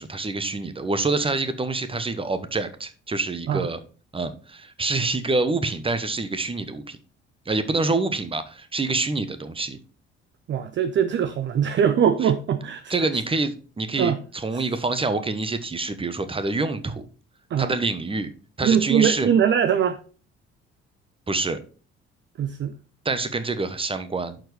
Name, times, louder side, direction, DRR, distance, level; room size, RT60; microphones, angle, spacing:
voice 1, 0.0-3.8 4.1-7.0 7.4-9.8 12.2-12.3 12.9-17.0 17.6-18.3 18.6-19.3 21.3-21.6 23.0-24.4, right 3 dB, 15° right, 1.0 m, -26 dB
voice 2, 10.5-12.9 14.0-14.2 14.5-14.6 17.5-17.7 18.6-20.0 22.4-22.7, right 8 dB, 35° right, 0.6 m, -22 dB
11.5 x 4.6 x 3.3 m
figure-of-eight pair, 50°, 32 cm